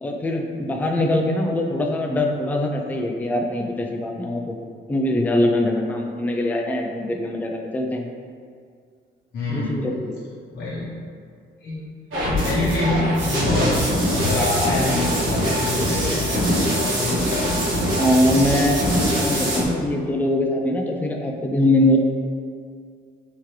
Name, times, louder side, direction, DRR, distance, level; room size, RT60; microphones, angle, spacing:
voice 1, 0.0-4.6 4.9-8.1 9.5-10.2 18.0-22.0, left 1 dB, 10° left, 2 dB, 0.4 m, -22 dB
voice 2, 9.3-9.8 10.5-11.0 11.6-11.8 12.4-13.8 14.1-17.5, left 2 dB, 60° left, -8 dB, 0.8 m, -26 dB
sound 1, 12.1-19.6, equal, 80° right, 1.2 m, -22 dB
3.6 x 2.9 x 3.2 m, 2.2 s
cardioid pair, 90°, 20 cm